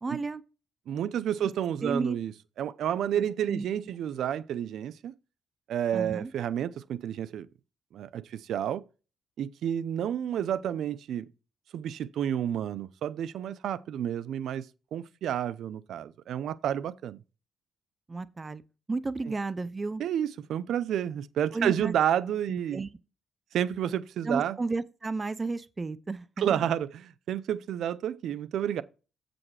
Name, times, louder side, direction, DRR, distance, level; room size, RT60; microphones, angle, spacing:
voice 1, 0.0-0.4 1.4-1.5 1.8-2.2 3.2-3.7 5.9-6.3 18.1-18.6 18.9-20.0 21.5-22.0 22.5-22.9 24.2-26.6, right 3 dB, 25° right, 0.5 m, -33 dB
voice 2, 0.9-2.3 2.6-5.1 5.7-7.5 7.9-8.8 9.4-11.3 11.7-14.7 14.9-17.2 20.0-22.8 23.5-24.6 26.4-28.8, right 10 dB, 75° right, 0.6 m, -30 dB
8.4 x 5.1 x 4.7 m
cardioid pair, 90°, 0 cm